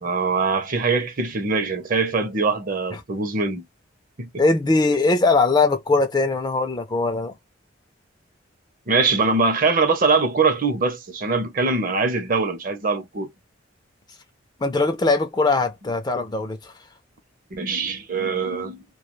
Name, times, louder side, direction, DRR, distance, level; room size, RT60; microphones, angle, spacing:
voice 1, 0.0-3.6 4.2-4.4 8.9-13.3 17.5-18.8, right 4 dB, 45° right, 0.6 m, -22 dB
voice 2, 4.4-7.3 14.6-16.7, left 3 dB, 20° left, 0.4 m, -20 dB
2.3 x 2.2 x 3.0 m
head